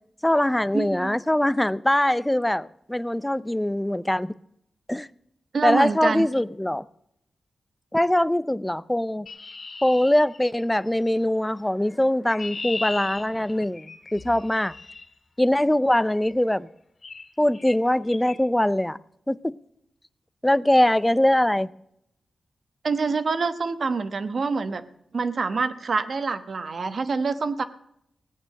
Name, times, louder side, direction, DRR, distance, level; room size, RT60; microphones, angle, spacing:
voice 1, 0.2-4.3 4.9-5.1 5.6-6.8 7.9-9.3 9.8-14.7 15.4-16.7 17.4-19.0 19.3-19.6 20.4-21.7, left 1 dB, 10° left, 0.5 m, -22 dB
voice 2, 0.7-1.1 5.5-6.3 22.8-24.8 25.1-27.6, right 4 dB, 60° right, 1.1 m, -26 dB
Chirp tweet, 9.3-10.9 11.9-15.1 16.2-16.4 17.0-17.3 17.5-17.8 18.1-18.4, left 4 dB, 55° left, 1.7 m, -37 dB
17.5 x 8.7 x 6.5 m
cardioid pair, 80°, 0 cm